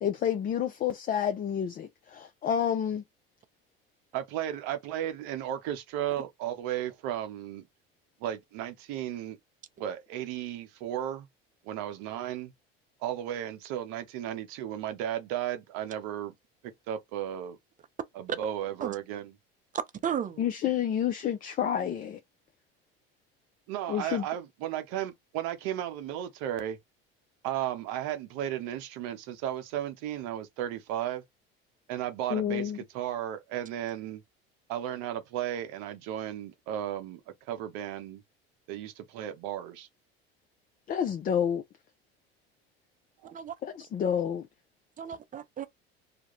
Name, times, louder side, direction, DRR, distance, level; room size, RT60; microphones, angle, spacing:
voice 1, 0.0-3.0 20.4-22.2 23.9-24.3 32.3-32.8 40.9-41.6 43.6-44.5, left 9 dB, 30° left, 0.4 m, -29 dB
voice 2, 4.1-7.6 8.2-9.4 9.8-11.3 11.6-12.5 13.0-16.3 16.9-17.6 18.2-19.3 23.7-26.8 27.4-31.2 31.9-34.2 34.7-37.2 37.5-38.2 38.7-39.9 43.2-43.3, right 11 dB, 65° right, 0.7 m, -34 dB
voice 3, 19.7-20.4 43.3-43.5 45.0-45.7, right 8 dB, 25° right, 0.5 m, -34 dB
2.3 x 2.1 x 3.0 m
hypercardioid pair, 75°, 30 cm